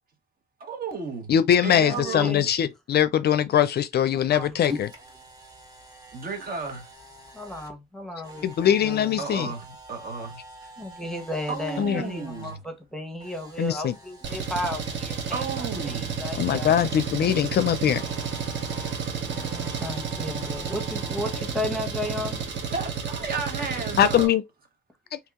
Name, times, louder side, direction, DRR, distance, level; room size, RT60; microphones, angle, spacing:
voice 1, 0.6-1.3 1.6-2.5 6.1-6.9 9.2-10.4 11.5-12.6 15.3-16.2 22.7-24.3, right 4 dB, 50° right, 1.4 m, -33 dB
voice 2, 1.3-4.7 8.4-9.5 11.8-12.0 13.6-13.9 16.4-18.0 24.0-24.4 25.1-25.2, left 9 dB, 55° left, 0.4 m, -22 dB
voice 3, 1.9-2.4 4.3-4.8 7.3-9.2 10.8-16.8 19.3-22.4, left 1 dB, ahead, 1.2 m, -34 dB
Camera, 4.2-12.6 12.9-17.4 17.9-21.4, right 1 dB, 20° right, 1.4 m, -48 dB
Engine, 14.2-24.3, right 6 dB, 70° right, 1.2 m, -31 dB
3.0 x 2.7 x 3.5 m
cardioid pair, 90°, 20 cm